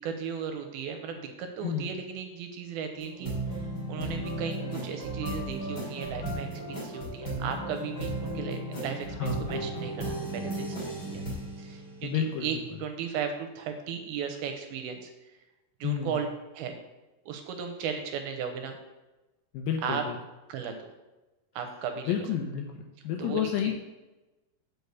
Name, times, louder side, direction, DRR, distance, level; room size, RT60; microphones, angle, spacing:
voice 1, 0.0-3.6 3.9-11.2 11.6-15.1 15.8-16.3 16.5-16.7 17.3-18.8 19.8-20.0 20.5-20.7 21.6-22.1 23.2-23.4, right 7 dB, 80° right, 6 dB, 2.4 m, -36 dB
sound 1, 3.0-12.6, right 1 dB, 30° left, 2.6 m, -35 dB
voice 2, 9.2-9.8 12.0-12.5 15.8-16.2 19.5-20.1 22.1-23.7, left 8 dB, 75° left, 3 dB, 2.2 m, -30 dB
7.9 x 4.7 x 6.9 m, 1.1 s
omnidirectional pair, 4.7 m